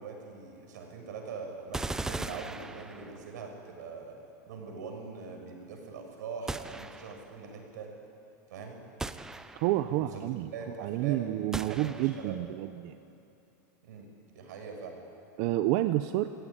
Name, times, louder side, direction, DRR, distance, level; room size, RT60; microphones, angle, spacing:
voice 1, 0.0-4.1 4.5-7.9 8.5-8.8 9.8-10.3 10.5-12.3 13.8-15.0, right 5 dB, 80° right, 3 dB, 6.4 m, -42 dB
sound 1, 1.7-3.4 6.5-7.4 9.0-9.9 11.5-12.4, right 3 dB, 5° right, 0.5 m, -38 dB
voice 2, 9.5-10.5 10.8-12.9 15.4-16.3, right 15 dB, 40° right, 10 dB, 0.7 m, -29 dB
30.0 x 16.5 x 10.0 m, 2.8 s
supercardioid pair, 170°, 10 cm